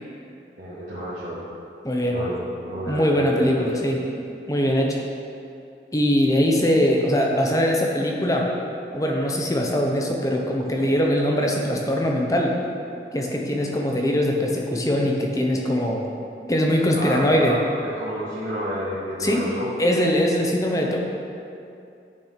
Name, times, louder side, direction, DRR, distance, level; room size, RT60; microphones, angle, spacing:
voice 1, 0.6-1.4 2.1-3.7 15.4-15.5 16.9-19.7, equal, 50° right, -11 dB, 1.8 m, -31 dB
voice 2, 1.8-2.2 2.9-4.0 4.5-5.0 5.9-8.4 8.9-12.5 13.1-16.1 16.5-17.6 19.2-19.5 19.8-21.0, equal, 20° left, 0 dB, 0.9 m, -21 dB
8.9 x 6.9 x 5.7 m, 2.6 s
head